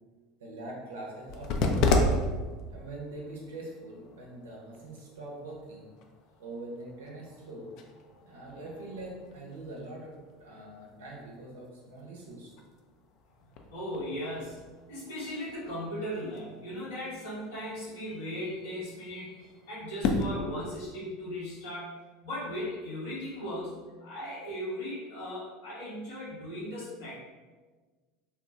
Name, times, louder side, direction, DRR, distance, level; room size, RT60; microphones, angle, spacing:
voice 1, 0.4-2.0 2.7-5.9 6.4-7.7 8.2-10.1 10.4-12.5, right 2 dB, 80° right, -2 dB, 0.6 m, -43 dB
sound 1, 1.2-20.3, left 2 dB, 55° left, 0.3 m, -35 dB
voice 2, 13.7-14.6 14.9-21.9 22.2-27.1, equal, 80° left, -7 dB, 1.4 m, -37 dB
2.8 x 2.1 x 2.5 m, 1.3 s
hypercardioid pair, 80°, 0 cm